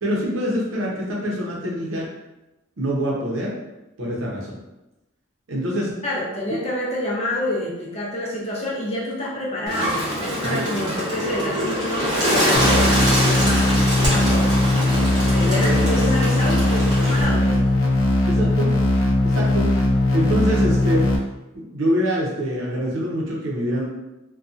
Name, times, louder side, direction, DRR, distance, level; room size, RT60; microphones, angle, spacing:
voice 1, 0.0-2.1 2.8-3.5 4.0-4.6 5.5-5.9 10.4-10.6 15.4-15.7 18.2-18.7 19.2-19.7 20.1-21.1 21.5-24.0, equal, 75° right, -3 dB, 0.7 m, -25 dB
voice 2, 6.0-14.5 15.3-17.8, left 1 dB, 30° left, -5 dB, 0.6 m, -28 dB
Bird, 9.7-17.2, equal, 20° right, 0.7 m, -24 dB
sound 1, 12.5-21.2, left 1 dB, 75° left, 0.5 m, -19 dB
2.7 x 2.3 x 2.4 m, 1.0 s
head